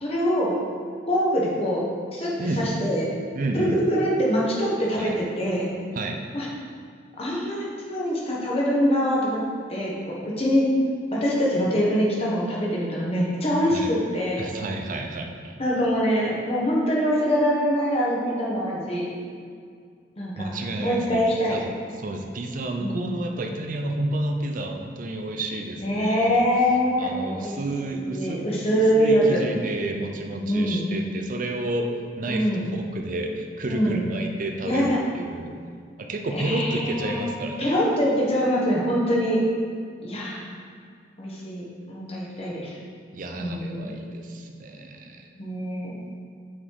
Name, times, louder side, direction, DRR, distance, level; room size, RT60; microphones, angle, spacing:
voice 1, 0.0-0.6 1.1-1.8 2.1-3.1 3.5-5.7 6.3-6.5 7.2-9.4 9.7-10.7 11.1-14.5 15.6-19.0 20.2-21.6 22.8-23.1 25.8-27.6 27.9-29.4 30.4-30.9 32.3-32.7 33.6-34.1 34.6-35.0 36.3-39.4 40.0-40.5 41.2-42.8 43.4-43.9 45.4-45.9, equal, 35° left, -4 dB, 1.2 m, -24 dB
voice 2, 3.3-3.8 5.0-5.1 6.0-6.2 13.7-13.9 14.4-15.5 20.4-21.2 21.5-21.6 22.0-26.4 27.0-28.5 28.7-31.9 32.2-35.5 36.0-37.8 43.1-45.3, right 2 dB, 45° right, 3 dB, 0.5 m, -31 dB
6.2 x 4.1 x 4.6 m, 2.2 s
head